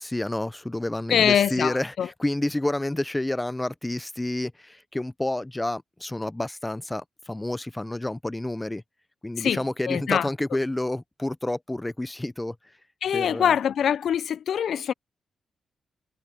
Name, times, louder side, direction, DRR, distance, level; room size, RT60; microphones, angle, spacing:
voice 1, 0.0-8.8 9.2-12.6 13.1-13.6, left 1 dB, 10° left, 0.5 m, -29 dB
voice 2, 1.1-2.1 9.4-10.3 13.0-14.9, left 9 dB, 70° left, 0.3 m, -24 dB
cardioid pair, 125°, 0 cm